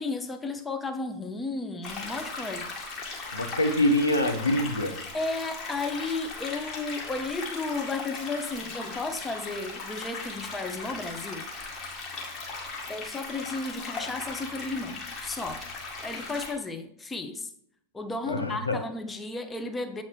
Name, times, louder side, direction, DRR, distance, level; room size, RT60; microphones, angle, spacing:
voice 1, 0.0-2.7 5.1-11.5 12.9-15.6 16.0-17.5 17.9-20.0, left 3 dB, 10° left, 0.6 m, -33 dB
sound 1, 1.8-16.5, left 3 dB, 30° left, 1.8 m, -38 dB
voice 2, 3.3-5.0 18.3-18.8, left 1 dB, 80° left, 0.8 m, -25 dB
7.7 x 4.2 x 4.6 m
figure-of-eight pair, 90°, 0 cm